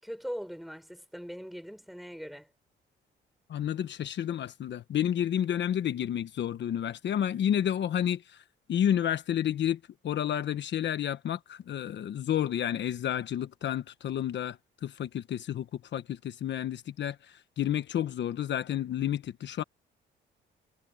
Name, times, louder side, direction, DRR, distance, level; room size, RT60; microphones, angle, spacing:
voice 1, 0.0-2.5, equal, ahead, 5.1 m, -40 dB
voice 2, 3.5-8.4 8.7-9.8 10.0-19.6, left 10 dB, 65° left, 1.2 m, -30 dB
cardioid pair, 90°, 20 cm